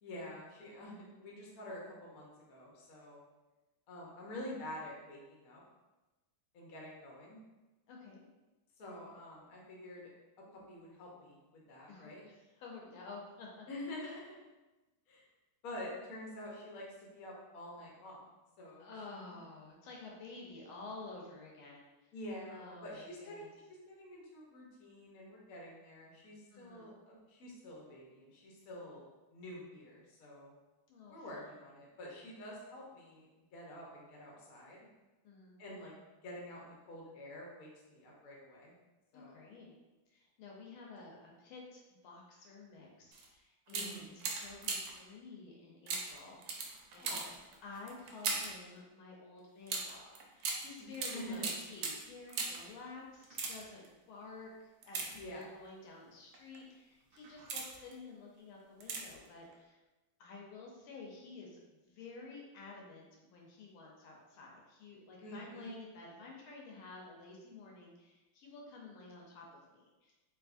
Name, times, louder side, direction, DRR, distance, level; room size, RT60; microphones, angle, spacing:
voice 1, 0.0-3.2 3.9-5.6 6.5-7.4 8.8-10.1 10.5-12.2 13.7-14.5 15.1-15.2 15.6-18.3 18.6-18.9 19.3-19.4 22.1-23.6 23.9-29.0 29.3-30.5 31.1-34.9 35.6-36.0 36.2-38.7 39.1-39.4 43.7-44.3 47.0-47.4 50.8-51.5 55.2-55.5 65.2-65.7, left 1 dB, 60° left, -3 dB, 0.9 m, -48 dB
voice 2, 7.9-8.3 11.9-13.6 14.0-14.1 18.8-21.8 22.5-23.5 26.5-26.9 30.9-31.6 35.2-35.6 39.1-39.8 40.1-47.2 47.6-54.5 54.8-59.8 60.2-70.1, left 3 dB, 80° left, -2 dB, 1.5 m, -51 dB
sound 1, 43.1-43.3 43.7-45.1 45.9-48.6 49.7-52.7 53.2-53.9 54.8-55.7 56.3-56.6 57.1-57.9 58.8-59.3 59.5-59.6, right 4 dB, 75° right, 1.2 m, -39 dB
3.4 x 2.7 x 2.5 m, 1.1 s
omnidirectional pair, 2.4 m